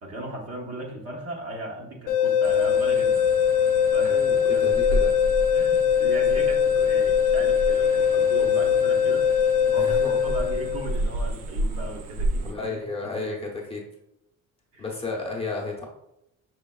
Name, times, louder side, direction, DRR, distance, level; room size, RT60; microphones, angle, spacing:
voice 1, 0.0-3.3 3.9-5.0 5.5-13.4 14.7-14.8, right 1 dB, 45° right, -2 dB, 1.2 m, -37 dB
sound 1, 2.1-11.0, left 7 dB, 75° left, 0.6 m, -21 dB
sound 2, 2.4-12.5, right 1 dB, 75° right, 0.7 m, -32 dB
voice 2, 4.1-5.1 9.7-10.3 12.4-13.8 14.8-15.8, left 3 dB, 15° left, -3 dB, 0.9 m, -33 dB
6.2 x 3.3 x 2.3 m, 0.84 s
cardioid pair, 125°, 34 cm